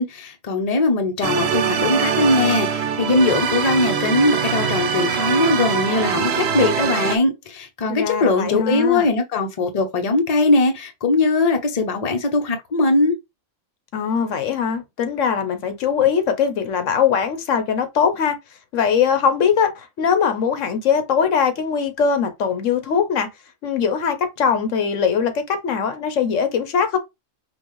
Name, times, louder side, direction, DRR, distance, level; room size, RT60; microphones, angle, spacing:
voice 1, 0.0-13.2, left 2 dB, 35° left, 0.8 m, -20 dB
sound 1, 1.2-7.2, right 7 dB, 60° right, 0.9 m, -22 dB
voice 2, 7.9-9.1 13.9-18.4 18.7-23.3 23.6-27.0, left 7 dB, 85° left, 1.1 m, -21 dB
5.6 x 2.5 x 3.1 m
omnidirectional pair, 1.3 m